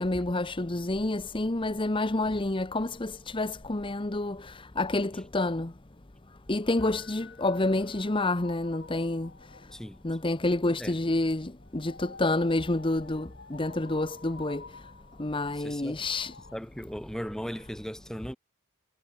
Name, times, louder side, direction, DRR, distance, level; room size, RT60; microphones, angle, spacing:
voice 1, 0.0-4.4 4.8-5.7 6.5-9.3 10.0-14.6 15.2-16.3, left 2 dB, 25° left, 0.9 m, -28 dB
sound 1, 6.8-10.6 11.6-16.6, left 4 dB, 50° left, 7.6 m, -51 dB
voice 2, 9.7-10.0 10.8-10.9 15.6-16.1 16.5-18.4, equal, 5° left, 3.7 m, -37 dB
head